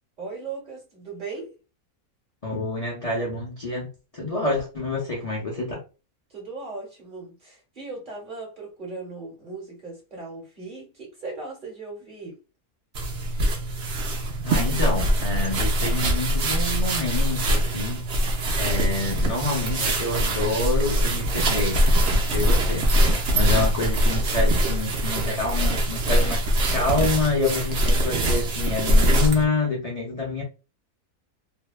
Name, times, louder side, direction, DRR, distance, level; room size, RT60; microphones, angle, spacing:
voice 1, 0.2-1.6 5.0-5.5 6.3-12.4, right 3 dB, 35° right, 1.1 m, -38 dB
voice 2, 2.4-3.9 4.1-5.8 14.4-30.4, left 3 dB, 70° left, 0.3 m, -27 dB
sound 1, 12.9-29.4, right 1 dB, 60° right, 0.8 m, -23 dB
2.8 x 2.2 x 2.3 m
omnidirectional pair, 1.7 m